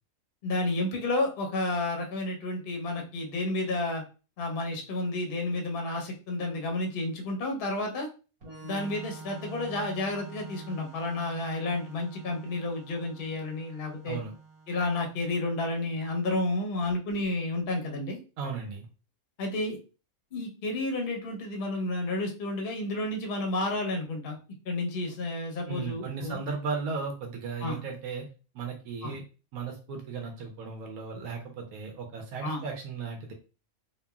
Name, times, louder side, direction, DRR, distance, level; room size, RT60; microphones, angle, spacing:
voice 1, 0.4-4.0 4.4-8.1 8.6-14.2 14.7-18.2 19.4-19.8 20.3-24.4 24.7-26.4 27.6-27.8 29.0-29.1 32.4-32.7, left 2 dB, 50° left, 2 dB, 0.7 m, -31 dB
Organ, 8.4-15.9, right 5 dB, 75° right, 1.6 m, -46 dB
voice 2, 18.4-18.9 25.7-28.3 28.5-29.2 29.5-33.3, right 5 dB, 90° right, 3 dB, 1.1 m, -36 dB
3.0 x 2.3 x 2.2 m, 0.34 s
omnidirectional pair, 1.5 m